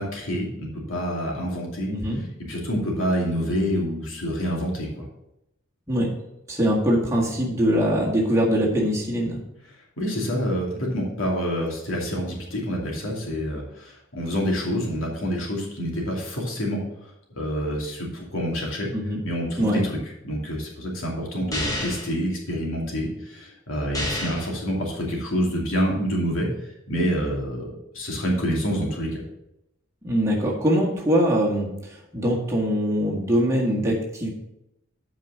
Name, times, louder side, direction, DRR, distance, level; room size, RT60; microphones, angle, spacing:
voice 1, 0.0-1.9 2.2-4.9 10.0-16.8 17.3-18.9 19.2-20.0 20.2-26.5 26.9-27.7 27.9-29.2, equal, 85° left, -2 dB, 2.6 m, -27 dB
voice 2, 1.9-2.2 5.9-6.1 6.5-9.4 18.9-19.2 19.6-19.8 30.0-31.7 32.1-34.3, equal, 15° right, -3 dB, 1.8 m, -22 dB
sound 1, 21.5-22.1 23.9-24.5, left 1 dB, 15° left, 1.4 m, -29 dB
8.2 x 5.0 x 6.8 m, 0.85 s
head